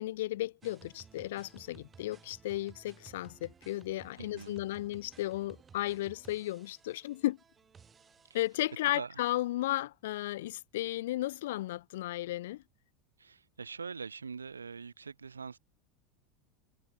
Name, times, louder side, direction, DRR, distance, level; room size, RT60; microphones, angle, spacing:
voice 1, 0.0-7.4 8.3-12.6, left 15 dB, 65° left, 0.3 m, -34 dB
sound 1, 0.6-8.9, right 6 dB, 25° right, 7.0 m, -57 dB
voice 2, 4.2-4.6 8.9-9.1 13.2-15.6, right 5 dB, 80° right, 0.5 m, -43 dB
figure-of-eight pair, 80°, 0 cm